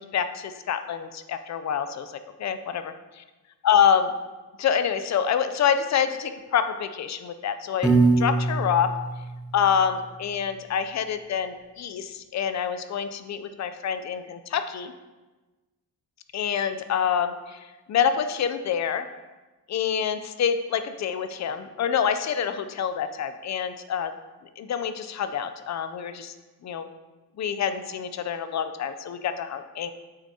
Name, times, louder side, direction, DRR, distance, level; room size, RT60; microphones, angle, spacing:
voice 1, 0.0-3.2 3.6-4.1 4.6-7.9 8.2-8.9 9.5-14.9 16.3-19.1 19.7-24.1 24.6-26.3 26.6-26.9 27.4-29.9, left 8 dB, 45° left, 10 dB, 0.5 m, -26 dB
Piano, 7.8-10.0, right 3 dB, ahead, 0.9 m, -23 dB
8.7 x 6.0 x 2.8 m, 1.2 s
wide cardioid pair, 150°, 39 cm